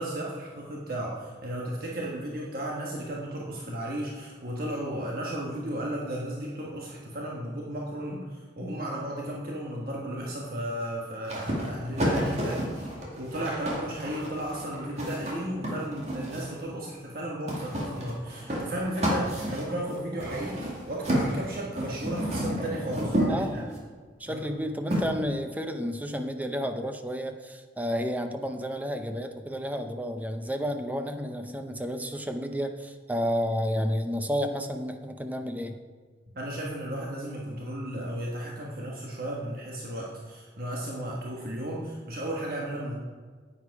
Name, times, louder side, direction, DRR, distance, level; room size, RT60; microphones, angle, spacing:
voice 1, 0.0-23.6 24.2-24.5 36.3-42.9, right 1 dB, 55° right, -3 dB, 1.4 m, -34 dB
sound 1, 11.3-16.6 17.5-23.8 24.9-25.0, equal, 40° right, 2.4 m, -31 dB
voice 2, 23.3-23.8 24.2-35.8, equal, 10° right, 6 dB, 0.6 m, -31 dB
9.7 x 8.8 x 4.8 m, 1.5 s
head